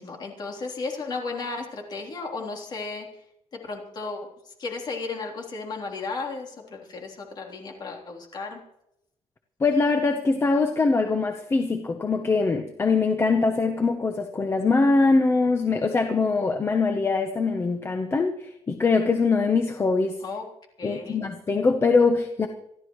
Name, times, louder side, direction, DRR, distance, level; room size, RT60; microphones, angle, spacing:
voice 1, 0.0-3.1 3.5-4.2 4.5-8.6 20.2-20.4 20.8-21.2, left 3 dB, 40° left, 0 dB, 3.5 m, -34 dB
voice 2, 9.6-20.2 20.8-22.5, left 4 dB, 25° left, 6 dB, 0.9 m, -22 dB
27.5 x 12.0 x 3.2 m, 0.82 s
cardioid pair, 165°, 11 cm